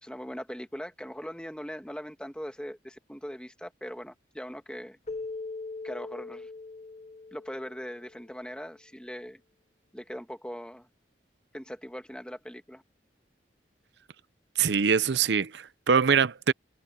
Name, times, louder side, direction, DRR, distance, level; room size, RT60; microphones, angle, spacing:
voice 1, 0.0-5.0 5.8-6.5 7.3-9.4 9.9-10.9 11.5-12.8, equal, 5° left, 1.6 m, -40 dB
Keyboard (musical), 5.1-8.3, left 3 dB, 35° left, 0.8 m, -40 dB
voice 2, 14.6-16.5, right 6 dB, 70° right, 0.6 m, -23 dB
head